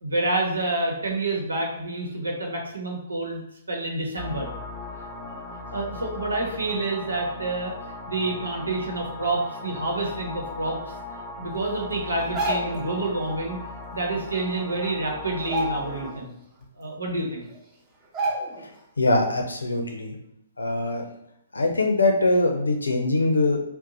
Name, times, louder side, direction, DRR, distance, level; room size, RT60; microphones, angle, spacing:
voice 1, 0.0-3.4 3.7-4.5 5.3-5.4 5.7-7.7 8.0-10.8 11.4-13.6 13.9-16.3 16.8-17.5, right 2 dB, 80° right, 0 dB, 1.0 m, -28 dB
sound 1, 4.2-16.1, left 2 dB, 10° left, 0.5 m, -38 dB
sound 2, 12.2-12.9 14.4-14.5 14.8-15.0 15.4-16.2 16.6-16.7 17.5-17.6 18.1-18.8 19.1-19.3, right 1 dB, 20° right, 0.9 m, -29 dB
voice 2, 19.0-20.1 20.6-21.0 21.5-23.6, left 2 dB, 85° left, 3 dB, 0.6 m, -22 dB
2.7 x 2.1 x 3.9 m, 0.78 s
figure-of-eight pair, 125°, 0 cm